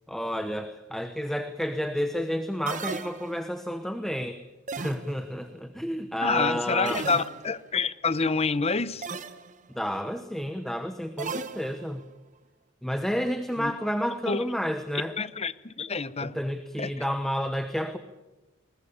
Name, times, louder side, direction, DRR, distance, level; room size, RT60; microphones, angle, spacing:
voice 1, 0.1-4.4 4.8-7.0 9.7-12.0 12.8-15.2 16.2-18.0, equal, ahead, 9 dB, 1.1 m, -30 dB
sound 1, 2.7-3.6 4.7-5.4 6.8-7.7 9.0-9.5 11.2-12.1, right 4 dB, 40° right, 1.2 m, -36 dB
voice 2, 6.2-9.1 13.6-13.7 14.2-14.5 15.2-16.3 16.8-16.9, left 4 dB, 30° left, 16 dB, 0.8 m, -27 dB
21.5 x 19.5 x 8.7 m, 1.0 s
head